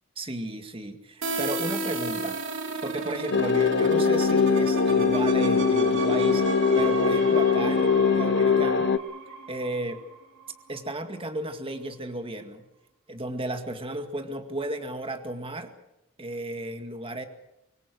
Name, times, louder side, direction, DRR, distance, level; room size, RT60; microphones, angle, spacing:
voice 1, 0.2-2.4 2.8-8.9 9.5-10.0 10.7-12.6 13.1-15.7 16.2-17.3, right 1 dB, 25° right, 6 dB, 2.1 m, -34 dB
sound 1, 1.2-10.8, right 3 dB, 60° right, 3.4 m, -34 dB
sound 2, 3.3-9.0, left 5 dB, 55° left, 0.9 m, -22 dB
25.5 x 21.0 x 6.4 m, 0.88 s
head